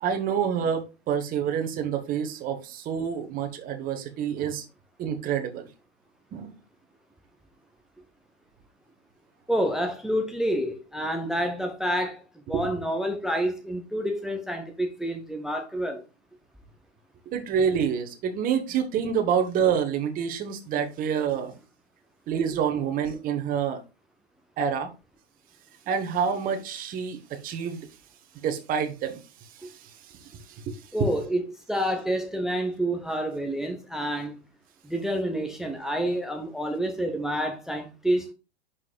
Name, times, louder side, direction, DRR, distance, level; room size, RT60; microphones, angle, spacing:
voice 1, 0.0-4.6 5.0-5.7 6.3-6.5 12.5-12.7 17.3-21.5 22.3-23.8 24.6-24.9 25.9-27.9 28.4-29.9 30.2-31.1, right 7 dB, 25° right, 1.1 m, -28 dB
voice 2, 9.5-12.2 12.5-16.0 30.9-31.4 31.7-34.4 34.8-38.3, equal, ahead, 0.3 m, -28 dB
10.5 x 4.2 x 2.4 m
figure-of-eight pair, 100°, 36 cm